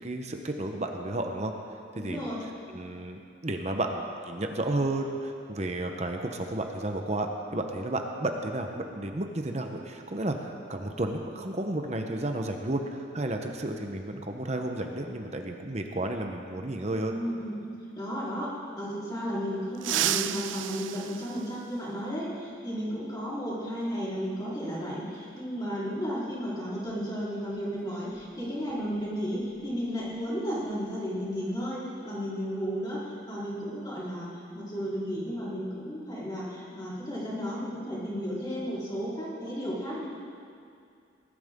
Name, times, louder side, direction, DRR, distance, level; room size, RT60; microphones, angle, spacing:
voice 1, 0.0-1.5 1.9-2.3 2.7-17.1, right 1 dB, 35° right, 4 dB, 0.9 m, -32 dB
voice 2, 1.9-2.4 17.0-18.5 18.8-40.1, equal, 20° left, -8 dB, 3.8 m, -33 dB
sound 1, 19.7-22.2 23.8-23.9 25.1-25.2 26.9-27.0 27.4-27.6 28.1-30.3 30.5-30.8 31.2-31.6, right 12 dB, 75° right, 0.4 m, -34 dB
19.5 x 11.5 x 3.7 m, 2.4 s
head